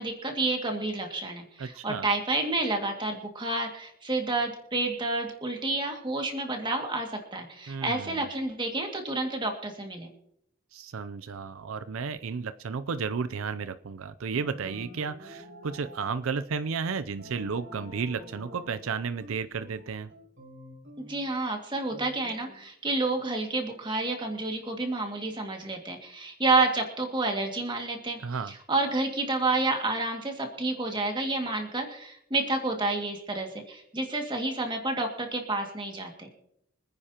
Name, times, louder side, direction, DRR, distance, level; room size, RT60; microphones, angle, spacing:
voice 1, 0.0-10.1 21.0-28.2 28.5-36.3, right 2 dB, 20° right, 2 dB, 2.1 m, -29 dB
voice 2, 1.6-2.1 7.7-8.2 10.7-20.1 28.2-28.5, right 5 dB, 75° right, 13 dB, 0.5 m, -33 dB
sound 1, 14.3-16.1 17.2-18.9 19.2-21.2 21.9-22.6, equal, 55° right, 4.1 m, -47 dB
25.5 x 9.7 x 2.9 m, 0.75 s
head